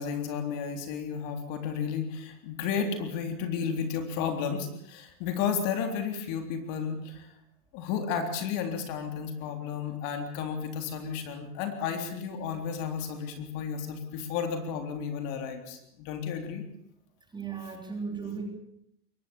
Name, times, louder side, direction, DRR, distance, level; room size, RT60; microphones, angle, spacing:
voice 1, 0.0-7.3 7.7-16.6, left 6 dB, 40° left, 5 dB, 3.8 m, -32 dB
voice 2, 17.3-18.5, right 5 dB, 10° right, 3 dB, 3.6 m, -36 dB
22.5 x 18.5 x 7.3 m, 0.75 s
hypercardioid pair, 135°, 47 cm